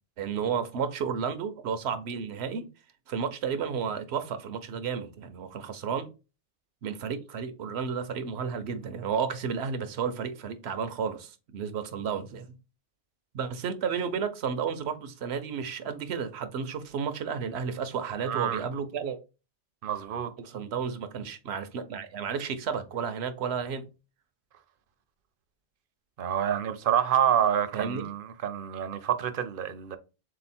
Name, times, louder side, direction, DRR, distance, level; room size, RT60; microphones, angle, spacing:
voice 1, 0.2-2.7 3.1-6.1 6.8-12.6 13.3-19.2 20.4-23.9 27.7-28.1, right 6 dB, 80° right, 0.9 m, -32 dB
voice 2, 18.2-18.6 19.8-20.3 26.2-30.0, right 9 dB, 65° right, 0.7 m, -27 dB
3.7 x 2.8 x 4.1 m
omnidirectional pair, 1.1 m